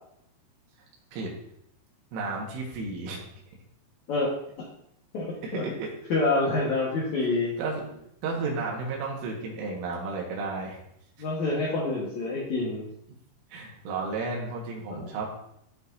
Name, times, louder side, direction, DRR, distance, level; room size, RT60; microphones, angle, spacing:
voice 1, 2.1-3.2 5.4-5.9 7.6-10.8 13.5-15.3, right 3 dB, 85° right, -2 dB, 4.1 m, -33 dB
voice 2, 5.1-5.6 6.1-7.5 11.2-12.9 14.9-15.1, left 2 dB, 80° left, -4 dB, 1.6 m, -27 dB
14.5 x 5.8 x 2.7 m, 0.75 s
omnidirectional pair, 5.7 m